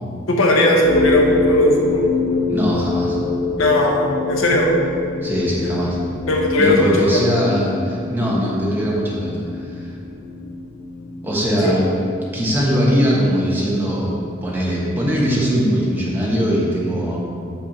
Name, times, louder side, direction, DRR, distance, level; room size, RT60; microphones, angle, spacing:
voice 1, 0.3-2.0 3.6-4.7 6.3-7.2 11.6-11.7, left 1 dB, 85° left, 0 dB, 1.0 m, -17 dB
sound 1, 0.8-15.7, left 3 dB, 50° left, 0.7 m, -26 dB
voice 2, 2.5-3.2 5.2-6.0 6.6-9.9 11.2-11.9 12.3-17.2, equal, 10° right, -6 dB, 1.2 m, -20 dB
5.7 x 4.5 x 5.6 m, 2.6 s
head